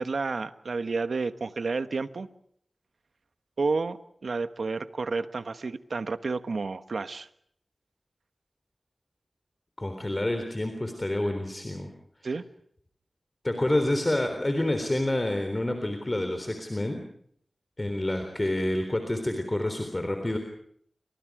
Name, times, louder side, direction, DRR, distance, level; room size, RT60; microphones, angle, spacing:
voice 1, 0.0-2.3 3.6-7.3 12.2-12.4, right 4 dB, 80° right, 11 dB, 1.2 m, -30 dB
voice 2, 9.8-11.9 13.4-17.0 17.8-20.4, left 1 dB, 25° left, 6 dB, 3.7 m, -28 dB
29.5 x 26.0 x 4.9 m, 0.67 s
wide cardioid pair, 90°, 0 cm